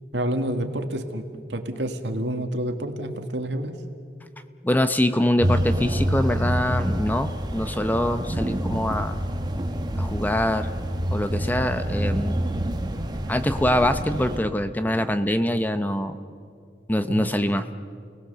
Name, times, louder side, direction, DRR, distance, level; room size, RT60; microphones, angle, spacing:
voice 1, 0.1-3.8 17.1-17.3, right 1 dB, 85° right, 6 dB, 1.8 m, -29 dB
voice 2, 4.6-9.2 10.0-10.7 11.1-12.4 13.3-16.2 16.9-17.7, left 1 dB, 10° left, 10 dB, 0.7 m, -24 dB
sound 1, 5.4-14.4, equal, 25° right, 1.1 m, -27 dB
29.0 x 19.0 x 6.9 m, 2.4 s
head